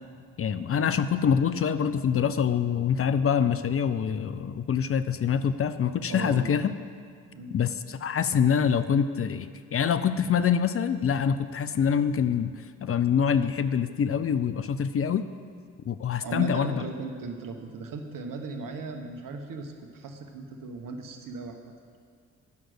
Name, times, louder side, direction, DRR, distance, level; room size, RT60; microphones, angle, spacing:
voice 1, 0.4-6.7 7.5-12.5 12.8-15.2 15.9-16.8, left 7 dB, 40° left, 12 dB, 0.5 m, -25 dB
voice 2, 6.1-6.5 7.3-7.5 16.2-21.7, right 3 dB, 60° right, 5 dB, 1.3 m, -37 dB
9.6 x 6.3 x 7.9 m, 2.1 s
hypercardioid pair, 45°, 36 cm